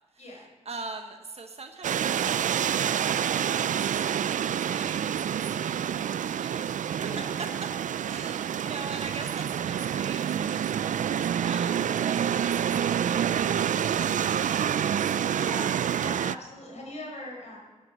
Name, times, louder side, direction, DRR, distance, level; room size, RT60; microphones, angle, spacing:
voice 1, 0.1-7.2 8.1-15.1, right 3 dB, 50° right, 5 dB, 1.2 m, -43 dB
sound 1, 1.8-16.4, right 9 dB, 75° right, 0.4 m, -27 dB
voice 2, 7.0-7.3 15.3-17.6, left 1 dB, 60° left, -1 dB, 5.5 m, -41 dB
14.0 x 11.0 x 6.5 m, 1.4 s
cardioid pair, 80°, 13 cm